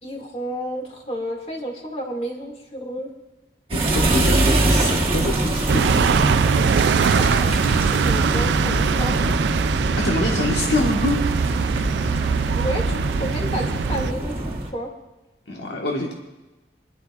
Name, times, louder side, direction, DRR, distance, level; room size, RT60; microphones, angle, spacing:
voice 1, 0.0-3.1 7.1-9.3 12.5-14.9, equal, 35° left, 0 dB, 2.2 m, -31 dB
voice 2, 3.7-5.8 10.0-11.2 15.5-16.1, left 2 dB, 85° left, -1 dB, 1.5 m, -25 dB
sound 1, 3.7-14.7, right 1 dB, 30° right, 1.3 m, -23 dB
sound 2, 5.7-14.1, right 6 dB, 85° right, 0.3 m, -22 dB
27.5 x 11.0 x 2.5 m, 1.1 s
head